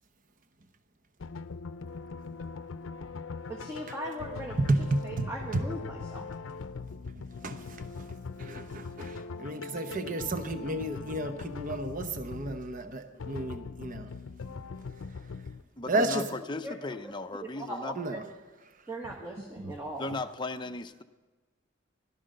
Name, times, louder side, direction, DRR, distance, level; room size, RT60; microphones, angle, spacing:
sound 1, 1.2-15.6, left 4 dB, 85° left, 0.6 m, -41 dB
voice 1, 3.5-4.6 5.0-6.3 15.9-16.0 16.6-16.7 17.0-17.1 17.6-18.2 18.9-20.1, right 1 dB, 15° right, -1 dB, 1.4 m, -39 dB
voice 2, 4.6-5.6 7.4-8.1 8.4-14.1 15.9-16.2 18.0-18.2 19.6-19.7, right 2 dB, 45° right, 8 dB, 0.9 m, -32 dB
voice 3, 15.8-17.9 20.0-21.0, left 3 dB, 25° left, 7 dB, 0.6 m, -36 dB
15.5 x 12.0 x 6.6 m, 1.3 s
head